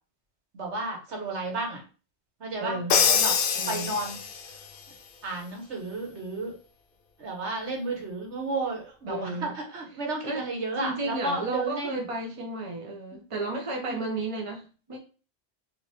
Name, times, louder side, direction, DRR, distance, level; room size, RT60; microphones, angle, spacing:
voice 1, 0.5-1.8 2.4-3.4 3.7-4.2 5.2-6.6 7.2-12.0 13.1-13.2 13.8-14.0, right 2 dB, 75° right, 1.6 m, -33 dB
voice 2, 2.6-3.0 3.6-4.0 9.1-9.5 10.2-10.4 10.8-15.0, right 2 dB, 30° right, 0.9 m, -33 dB
Crash cymbal, 2.9-4.6, left 7 dB, 60° left, 0.7 m, -24 dB
5.0 x 2.7 x 3.6 m
omnidirectional pair, 1.2 m